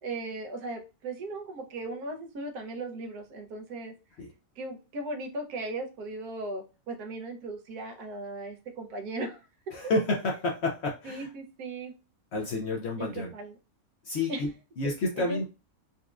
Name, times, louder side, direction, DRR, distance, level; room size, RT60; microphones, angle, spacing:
voice 1, 0.0-3.9 4.6-9.4 11.0-11.9 13.0-13.6 14.3-14.4 15.2-15.4, right 2 dB, 85° right, 4 dB, 1.3 m, -37 dB
voice 2, 9.7-11.3 12.3-13.3 14.0-14.5 14.8-15.5, left 2 dB, 65° left, 0 dB, 0.7 m, -29 dB
4.0 x 2.4 x 2.3 m, 0.30 s
omnidirectional pair, 1.6 m